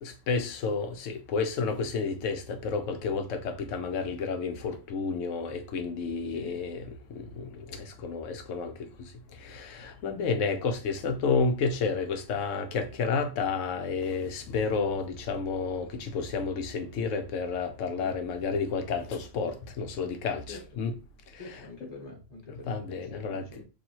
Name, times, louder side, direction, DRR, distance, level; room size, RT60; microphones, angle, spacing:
voice 1, 0.0-6.8 7.1-9.1 9.4-20.9 22.5-23.5, left 5 dB, 75° left, 1.0 m, -31 dB
voice 2, 6.3-6.6 13.2-13.3 18.0-18.1 20.5-20.6 21.4-23.6, left 2 dB, 20° left, 1.2 m, -45 dB
2.8 x 2.7 x 4.2 m
omnidirectional pair, 1.3 m